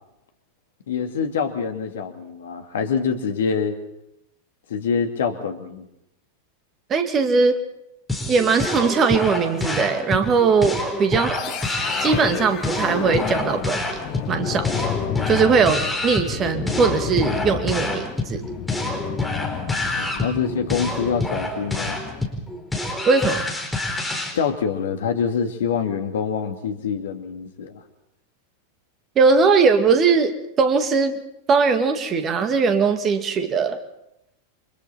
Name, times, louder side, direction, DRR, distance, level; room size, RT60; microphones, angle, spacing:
voice 1, 0.9-3.8 4.7-5.9 20.0-22.0 24.3-27.8, left 6 dB, 60° left, 6 dB, 2.3 m, -25 dB
voice 2, 6.9-7.6 8.3-11.4 12.0-13.8 14.3-14.7 15.3-18.5 23.1-23.4 29.2-31.2 31.5-33.8, right 5 dB, 25° right, 7 dB, 2.2 m, -20 dB
sound 1, 8.1-24.3, left 2 dB, 5° left, 4.6 m, -27 dB
sound 2, 11.3-22.4, left 10 dB, 40° left, 1.9 m, -32 dB
29.0 x 25.0 x 4.2 m, 0.82 s
figure-of-eight pair, 90°, 0 cm